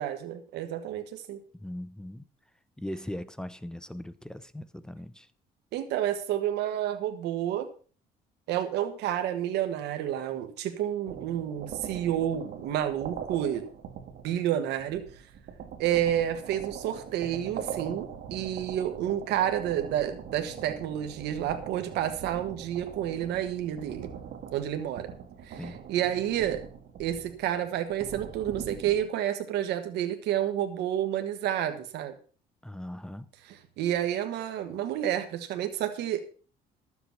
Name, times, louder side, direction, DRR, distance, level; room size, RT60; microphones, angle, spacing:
voice 1, 0.0-1.4 5.7-7.7 8.5-13.7 14.2-15.0 15.8-24.1 24.5-25.1 25.4-25.6 25.9-26.6 27.0-32.2 33.5-36.2, right 11 dB, 80° right, 1.4 m, -30 dB
voice 2, 1.6-2.3 2.8-5.3 25.6-25.8 32.6-33.3, left 1 dB, 5° left, 0.7 m, -39 dB
sound 1, 11.1-29.1, right 8 dB, 65° right, 2.1 m, -42 dB
12.0 x 8.0 x 5.8 m
cardioid pair, 110°, 17 cm